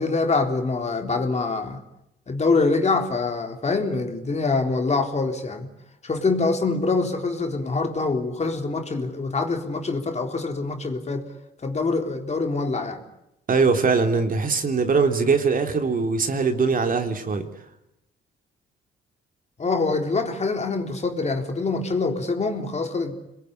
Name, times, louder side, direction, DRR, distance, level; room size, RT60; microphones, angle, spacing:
voice 1, 0.0-1.8 2.3-5.7 6.0-11.2 11.6-13.0 19.6-23.1, left 3 dB, 35° left, 4 dB, 3.9 m, -25 dB
voice 2, 13.5-17.5, right 4 dB, 45° right, 5 dB, 3.4 m, -21 dB
26.5 x 21.5 x 9.8 m, 0.88 s
cardioid pair, 90°, 20 cm